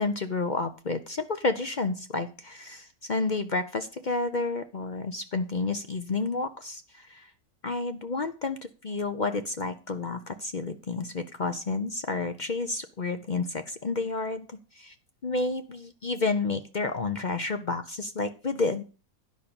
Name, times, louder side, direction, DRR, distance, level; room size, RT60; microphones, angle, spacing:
voice 1, 0.0-7.3 7.6-8.6 8.8-14.9 15.2-18.8, left 3 dB, 45° left, 9 dB, 0.6 m, -30 dB
10.5 x 5.9 x 6.9 m, 0.34 s
omnidirectional pair, 1.6 m